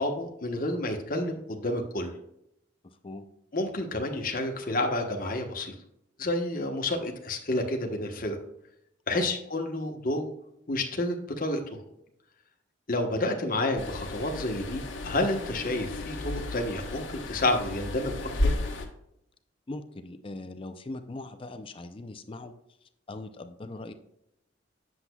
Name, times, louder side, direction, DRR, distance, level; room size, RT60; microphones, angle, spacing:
voice 1, 0.0-2.1 3.5-5.7 6.2-8.4 9.1-10.3 10.7-11.6 12.9-18.1 18.4-18.5, left 1 dB, 45° left, 3 dB, 1.0 m, -29 dB
voice 2, 2.8-3.3 9.1-9.3 19.7-22.5 22.8-23.9, left 2 dB, 30° left, 9 dB, 0.5 m, -41 dB
sound 1, 13.8-18.9, left 2 dB, 80° left, 1.2 m, -33 dB
8.1 x 7.2 x 2.3 m, 0.80 s
head